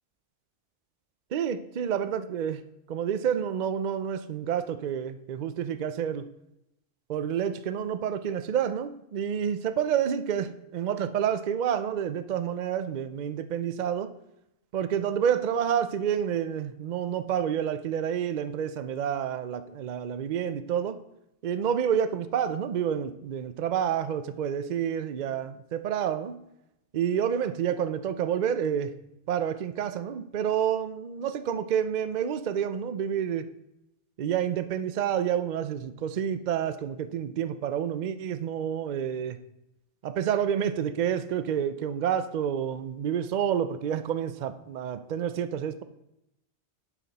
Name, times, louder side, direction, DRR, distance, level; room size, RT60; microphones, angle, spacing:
voice 1, 1.3-2.6 2.9-6.3 7.1-14.1 14.7-21.0 21.4-26.4 26.9-28.9 29.3-33.5 34.2-39.4 40.0-45.8, right 8 dB, 50° right, 12 dB, 0.6 m, -29 dB
11.0 x 5.9 x 4.1 m, 0.85 s
omnidirectional pair, 1.2 m